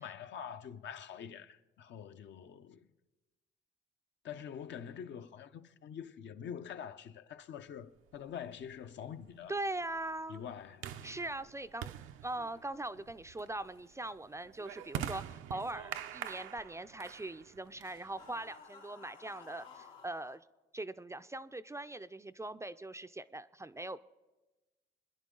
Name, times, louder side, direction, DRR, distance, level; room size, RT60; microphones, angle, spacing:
voice 1, 0.0-2.9 4.2-9.5 10.3-11.0, left 8 dB, 65° left, 0.7 m, -45 dB
sound 1, 8.1-18.5, right 10 dB, 90° right, 0.7 m, -46 dB
voice 2, 9.5-10.4 11.0-11.9 12.2-20.4 20.7-24.0, right 2 dB, 15° right, 0.4 m, -41 dB
sound 2, 18.2-20.4, left 5 dB, 90° left, 1.9 m, -54 dB
23.5 x 10.5 x 3.8 m
cardioid pair, 90°, 20 cm